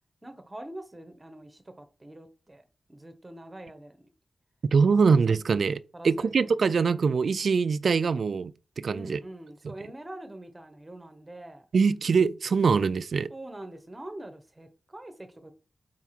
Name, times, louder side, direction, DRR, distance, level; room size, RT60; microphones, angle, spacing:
voice 1, 0.2-2.6 2.9-4.1 5.9-6.6 8.9-11.6 13.3-15.5, right 1 dB, 15° right, 1.1 m, -44 dB
voice 2, 4.7-8.5 8.8-9.2 11.7-13.3, right 5 dB, 65° right, 0.3 m, -23 dB
4.7 x 4.5 x 5.8 m
wide cardioid pair, 110°, 0 cm